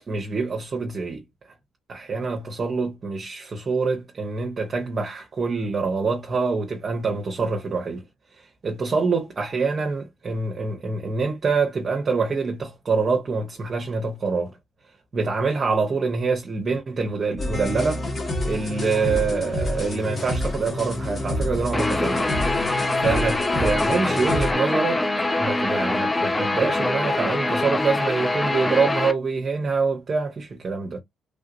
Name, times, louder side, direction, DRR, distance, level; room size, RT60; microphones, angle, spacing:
voice 1, 0.1-1.2 1.9-8.0 8.4-14.5 15.1-18.0 18.4-22.2 23.0-25.0 25.4-31.0, right 4 dB, 40° right, 0.8 m, -25 dB
sound 1, 17.4-24.5, left 1 dB, 40° left, 1.6 m, -28 dB
Guitar, 21.7-29.1, left 2 dB, 15° left, 0.6 m, -24 dB
3.2 x 2.7 x 2.6 m
cardioid pair, 90°, 0 cm